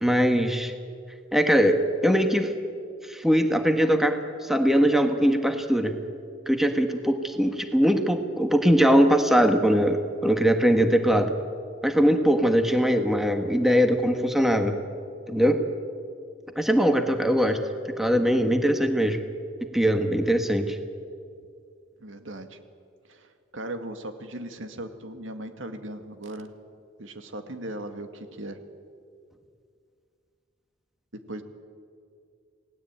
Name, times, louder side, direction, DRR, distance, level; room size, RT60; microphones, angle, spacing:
voice 1, 0.0-0.7 1.3-2.5 3.1-4.1 4.4-5.9 6.5-10.0 10.2-11.3 11.8-14.7 15.3-15.6 16.5-17.6 17.8-19.2 19.7-20.8, equal, ahead, 5 dB, 1.5 m, -21 dB
voice 2, 22.0-22.6 23.1-26.5 27.0-28.6 31.3-31.4, right 1 dB, 80° right, 7 dB, 2.0 m, -38 dB
28.5 x 18.5 x 9.0 m, 2.4 s
head